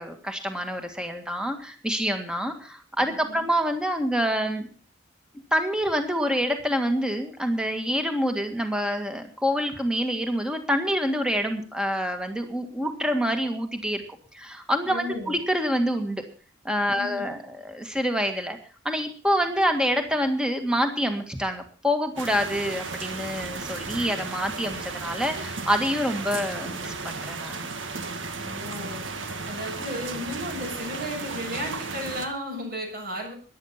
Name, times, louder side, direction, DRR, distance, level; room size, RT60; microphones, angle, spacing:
voice 1, 0.0-4.7 5.5-14.0 14.3-16.3 16.6-18.6 18.9-27.6, equal, 5° right, 6 dB, 1.8 m, -26 dB
voice 2, 3.1-3.4 14.9-15.4 16.9-17.2 28.4-29.0 29.5-33.3, equal, 50° right, 1 dB, 6.9 m, -34 dB
sound 1, 22.2-32.3, right 4 dB, 85° right, 1.8 m, -34 dB
14.0 x 11.0 x 5.8 m, 0.41 s
head